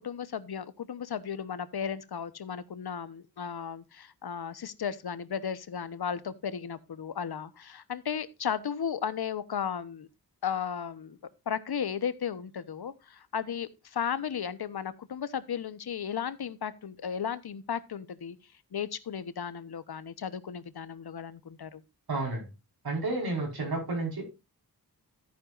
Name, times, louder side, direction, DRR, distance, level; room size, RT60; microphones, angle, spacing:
voice 1, 0.0-10.1 10.4-11.2 11.5-18.4 18.7-21.8, left 7 dB, 80° left, 1.1 m, -35 dB
voice 2, 22.1-22.5 22.8-24.2, right 2 dB, 75° right, 5.0 m, -31 dB
13.5 x 9.7 x 2.5 m
wide cardioid pair, 115°, 38 cm